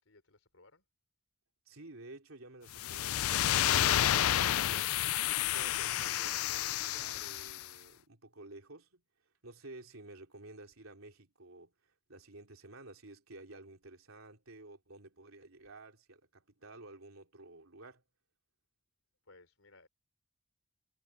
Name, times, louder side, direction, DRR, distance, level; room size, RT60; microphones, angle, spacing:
voice 1, 0.0-0.8 19.2-19.9, left 2 dB, 70° left, 4.6 m, -62 dB
voice 2, 1.7-9.0 9.4-11.7 12.1-18.0, right 2 dB, 70° right, 3.7 m, -52 dB
sound 1, 2.7-7.7, left 12 dB, 85° left, 0.4 m, -30 dB
head